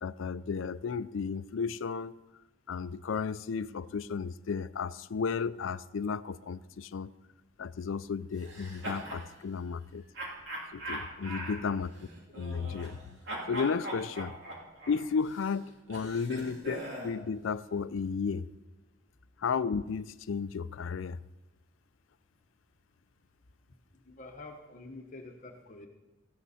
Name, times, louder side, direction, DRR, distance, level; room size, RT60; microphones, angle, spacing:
voice 1, 0.0-2.1 2.7-7.1 7.6-10.0 10.7-11.9 12.3-13.2 13.5-14.3 14.9-18.5 19.4-21.2, left 5 dB, 75° left, 0.4 m, -33 dB
sound 1, 8.4-9.3 10.1-13.0 13.3-17.2, right 1 dB, 60° right, 3.1 m, -41 dB
voice 2, 23.9-25.9, left 2 dB, 40° left, 1.1 m, -47 dB
17.5 x 14.5 x 4.2 m
head